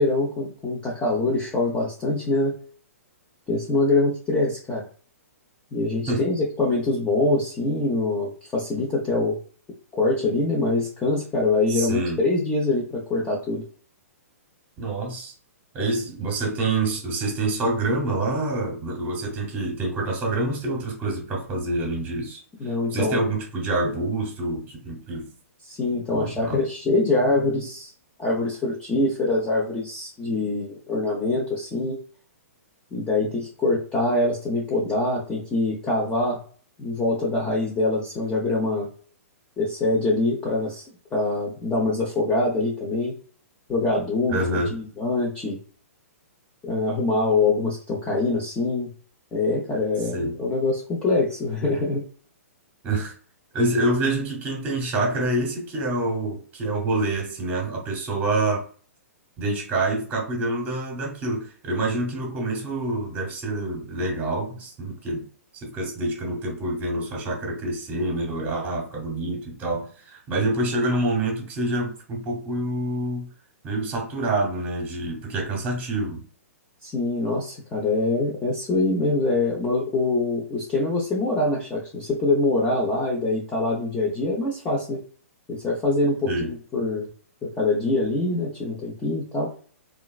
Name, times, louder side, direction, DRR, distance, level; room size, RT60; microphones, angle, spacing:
voice 1, 0.0-2.5 3.5-4.8 5.7-9.4 9.9-13.6 22.6-23.2 25.6-27.9 28.2-32.0 32.9-36.4 36.8-38.9 39.6-40.8 41.1-43.1 43.7-45.6 46.6-48.9 49.3-52.0 76.8-85.0 85.5-87.1 87.4-89.5, left 2 dB, 15° left, -4 dB, 0.7 m, -24 dB
voice 2, 11.7-12.2 14.8-15.3 15.7-22.4 22.9-25.3 26.1-26.6 44.3-44.7 50.1-50.4 52.8-53.1 53.5-58.6 59.4-65.2 65.5-73.3 73.6-76.2 86.3-86.5, right 2 dB, 20° right, 1 dB, 1.1 m, -27 dB
2.9 x 2.4 x 2.4 m, 0.43 s
hypercardioid pair, 125°, 8 cm